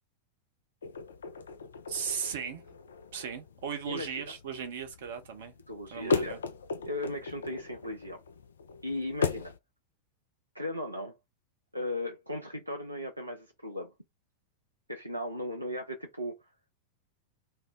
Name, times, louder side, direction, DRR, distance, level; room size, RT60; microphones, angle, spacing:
sound 1, 0.8-9.6, left 4 dB, 70° left, 0.3 m, -37 dB
voice 1, 1.9-2.6 3.1-5.5 5.9-6.4, right 7 dB, 60° right, 0.8 m, -37 dB
voice 2, 5.7-6.4 6.9-8.2 8.8-9.5 10.5-11.2 11.7-13.9 14.9-16.4, left 1 dB, 85° right, 0.5 m, -36 dB
2.5 x 2.1 x 3.5 m
figure-of-eight pair, 90°, 0 cm